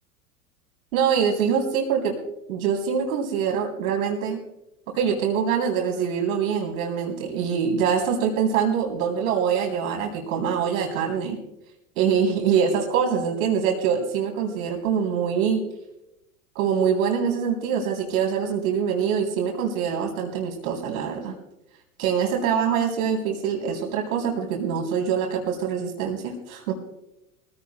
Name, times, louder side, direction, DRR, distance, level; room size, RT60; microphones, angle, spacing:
voice 1, 0.9-2.2 2.5-4.4 4.9-11.4 12.0-15.6 16.6-21.4 22.0-26.7, right 7 dB, 65° right, 1 dB, 3.4 m, -24 dB
21.5 x 16.0 x 2.2 m, 0.88 s
hypercardioid pair, 90°, 45 cm